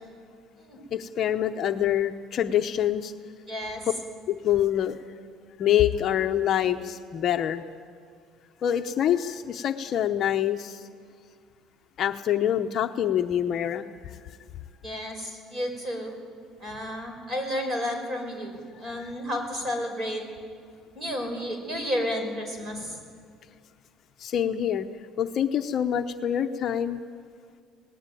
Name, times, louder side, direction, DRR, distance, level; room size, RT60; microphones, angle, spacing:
voice 1, 0.9-3.1 4.3-5.0 5.6-7.6 8.6-10.8 12.0-13.9 18.7-18.9 24.2-24.9 25.2-27.0, left 10 dB, 40° left, 6 dB, 0.8 m, -25 dB
voice 2, 3.5-3.9 14.8-16.2 16.6-20.2 20.9-23.0, equal, 25° right, 4 dB, 5.4 m, -32 dB
27.0 x 19.0 x 9.2 m, 2.1 s
cardioid pair, 160°, 0 cm